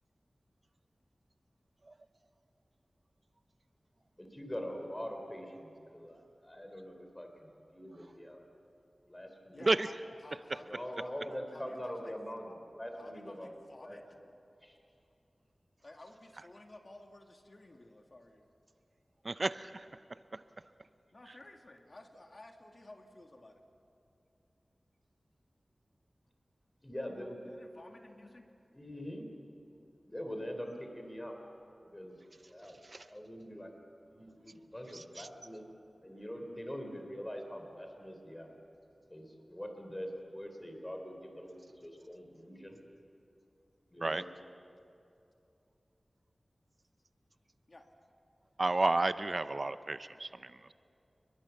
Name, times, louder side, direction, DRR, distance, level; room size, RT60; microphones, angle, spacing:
voice 1, 4.2-8.5 9.1-9.7 10.7-13.5 13.8-14.0 14.6-14.8 26.8-27.5 28.7-29.3 30.1-31.3 31.8-32.2 32.5-33.7 34.1-35.6 36.0-38.5 39.1-42.8 43.9-44.2, equal, 20° left, 4 dB, 3.7 m, -43 dB
voice 2, 9.5-10.0 10.2-12.2 13.0-14.0 15.8-18.5 21.1-23.6 27.4-28.5 44.2-44.3 47.7-47.9, left 2 dB, 45° left, 3 dB, 2.1 m, -54 dB
voice 3, 19.2-20.0 20.3-20.4 32.6-33.1 34.9-35.3 44.0-44.2 48.6-50.7, right 2 dB, 50° right, 12 dB, 0.6 m, -32 dB
30.0 x 21.0 x 7.1 m, 2.6 s
wide cardioid pair, 65°, 0 cm